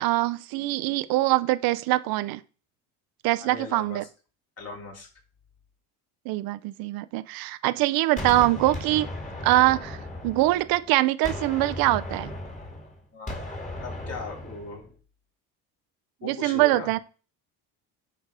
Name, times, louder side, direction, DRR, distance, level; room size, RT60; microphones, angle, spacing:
voice 1, 0.0-2.4 3.2-4.0 6.3-9.1 9.4-10.0 10.2-12.3 16.2-17.0, right 17 dB, 75° right, 0.7 m, -23 dB
voice 2, 3.4-4.1 4.6-5.1 13.1-13.4 13.8-15.0 16.2-16.9, left 3 dB, 40° left, 3.4 m, -38 dB
Gunshot gunfire, 8.2-10.9 11.2-14.8, left 1 dB, 20° left, 2.5 m, -36 dB
10.5 x 4.2 x 4.8 m
cardioid pair, 120°, 36 cm